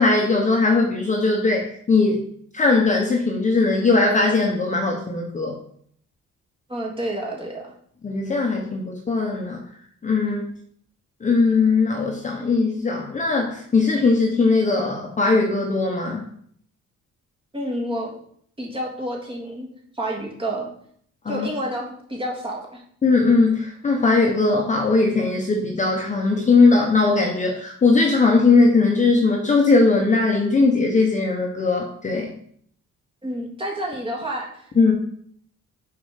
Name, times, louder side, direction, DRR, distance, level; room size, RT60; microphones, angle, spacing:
voice 1, 0.0-2.2 2.5-5.6 8.0-9.6 10.0-10.5 11.2-16.3 21.2-21.5 23.0-32.3 34.8-34.9, left 3 dB, 25° left, 0 dB, 0.8 m, -19 dB
voice 2, 6.7-7.7 17.5-18.1 18.6-19.7 19.9-20.7 21.3-22.8 33.2-34.9, right 1 dB, 15° right, -2 dB, 1.7 m, -29 dB
6.7 x 4.2 x 5.7 m, 0.63 s
cardioid pair, 175°, 31 cm